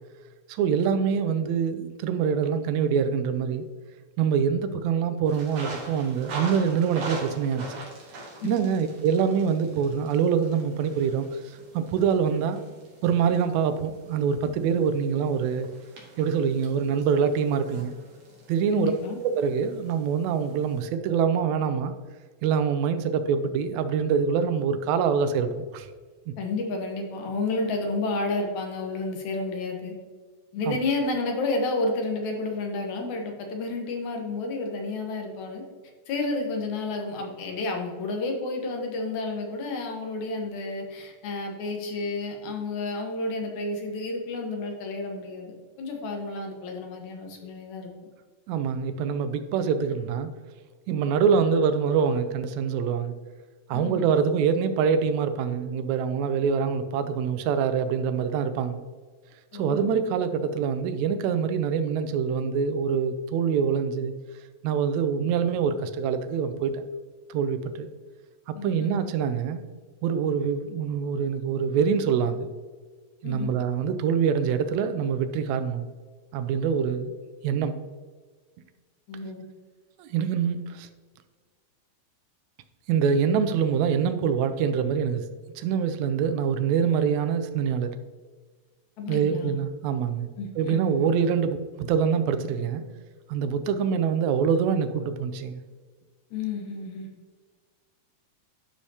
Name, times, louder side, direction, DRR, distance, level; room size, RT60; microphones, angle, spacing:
voice 1, 0.5-3.7 4.2-7.7 8.4-12.6 13.0-15.7 16.2-17.9 18.5-18.9 19.2-21.9 22.4-25.9 30.7-30.8 48.5-50.3 50.9-53.1 53.7-58.8 59.5-64.1 64.6-66.8 67.3-67.9 68.5-69.6 70.0-72.5 73.2-75.9 76.3-77.1 77.4-77.8 80.0-80.9 82.9-85.3 85.6-87.9 89.1-90.3 90.6-92.8 93.3-95.6, right 7 dB, 80° right, 9 dB, 1.9 m, -25 dB
sound 1, 5.3-20.9, right 2 dB, 60° right, 2.8 m, -43 dB
voice 2, 8.4-8.8 18.7-19.2 26.4-29.9 30.5-35.6 36.1-47.9 53.7-54.1 59.5-59.8 68.5-69.1 73.2-73.5 79.1-79.5 89.0-89.5 90.4-91.1 96.3-97.1, left 3 dB, 75° left, 2 dB, 2.5 m, -31 dB
11.5 x 4.9 x 2.8 m, 1.5 s
omnidirectional pair, 3.4 m